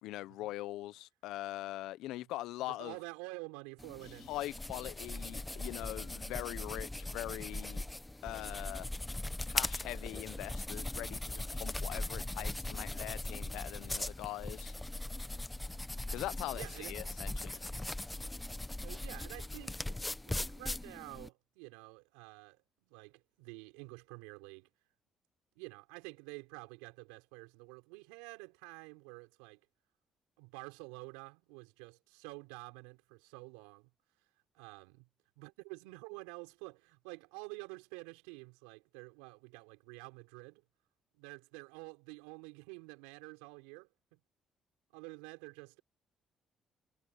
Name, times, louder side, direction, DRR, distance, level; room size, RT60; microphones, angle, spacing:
voice 1, 0.0-3.0 4.3-7.8 8.2-8.9 9.5-14.7 16.1-17.7, left 16 dB, 80° left, 0.9 m, -42 dB
voice 2, 2.6-4.3 15.6-15.8 16.5-17.1 18.8-24.7 25.6-29.6 30.4-33.9 34.5-35.1 35.4-40.6 41.1-44.2 44.9-45.8, right 28 dB, 90° right, 5.3 m, -49 dB
sound 1, 3.8-21.3, left 1 dB, 15° left, 1.3 m, -40 dB
hypercardioid pair, 55°, 0 cm